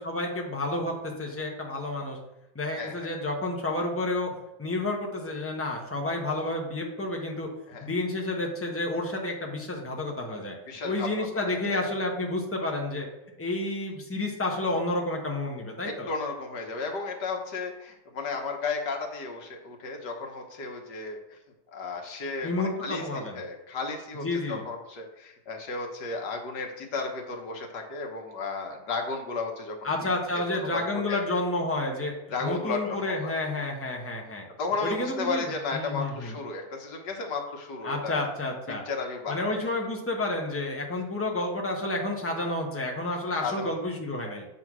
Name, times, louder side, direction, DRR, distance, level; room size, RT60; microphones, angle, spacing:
voice 1, 0.0-2.2 2.5-4.3 4.6-7.5 7.8-10.5 10.8-13.1 13.4-16.1 22.4-23.4 24.2-24.6 29.8-32.1 32.4-34.4 34.8-36.4 37.8-38.8 39.3-44.5, left 2 dB, 10° left, 0 dB, 0.9 m, -30 dB
voice 2, 2.8-3.1 7.7-7.9 10.7-11.8 15.8-21.4 21.7-30.1 30.7-31.2 32.3-33.3 34.6-38.3 38.9-39.7 43.4-43.8, left 4 dB, 80° left, 2 dB, 1.7 m, -34 dB
8.1 x 3.8 x 6.0 m, 0.92 s
omnidirectional pair, 1.8 m